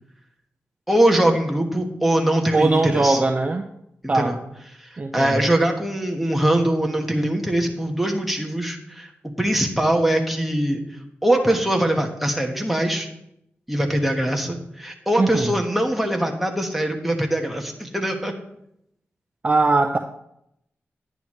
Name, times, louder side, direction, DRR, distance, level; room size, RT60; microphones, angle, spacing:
voice 1, 0.9-3.2 4.0-4.4 4.8-9.1 9.4-10.8 11.2-13.1 13.7-18.3, right 1 dB, 5° right, 2 dB, 1.4 m, -22 dB
voice 2, 2.5-3.7 4.1-4.4 5.0-5.5 15.2-15.6 19.4-20.0, right 3 dB, 30° right, 5 dB, 0.6 m, -20 dB
10.5 x 9.3 x 3.2 m, 0.78 s
wide cardioid pair, 95°, 5 cm